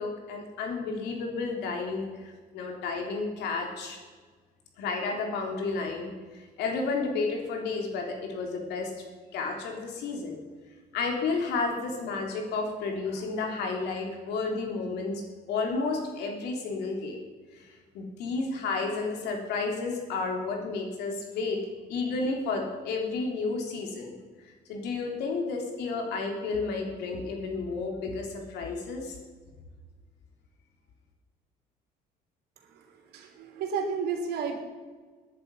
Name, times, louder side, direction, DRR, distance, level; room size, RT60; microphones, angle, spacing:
voice 1, 0.0-4.0 4.8-8.9 9.3-10.4 10.9-15.2 15.5-17.2 17.5-21.6 21.9-24.1 24.4-29.2, left 4 dB, 85° left, 2 dB, 3.5 m, -32 dB
voice 2, 33.1-34.6, right 5 dB, 75° right, 4 dB, 3.2 m, -32 dB
20.0 x 10.5 x 5.6 m, 1.4 s
cardioid pair, 110°, 17 cm